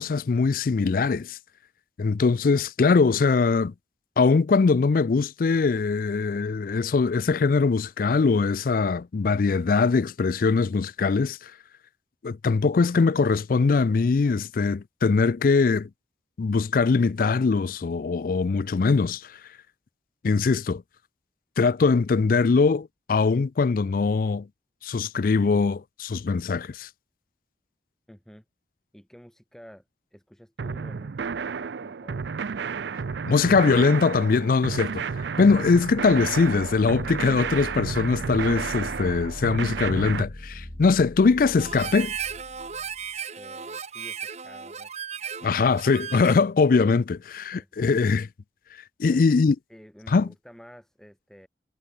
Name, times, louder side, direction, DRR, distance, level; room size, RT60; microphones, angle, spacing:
voice 1, 0.0-1.4 2.0-3.7 4.2-11.5 12.2-15.9 16.4-19.3 20.2-20.8 21.6-24.5 24.8-26.9 33.3-35.0 35.4-42.1 45.4-48.3 49.0-49.6 50.1-50.3, left 4 dB, 50° left, 0.4 m, -22 dB
voice 2, 28.1-28.4 28.9-29.8 30.1-32.3 43.4-44.9 47.5-48.0 49.0-49.2 49.7-51.5, equal, 5° left, 2.5 m, -50 dB
sound 1, 30.6-40.2, right 5 dB, 80° right, 0.5 m, -31 dB
sound 2, 35.5-43.1, left 1 dB, 20° left, 0.7 m, -41 dB
Harmonica, 41.6-46.5, right 7 dB, 40° right, 1.5 m, -35 dB
head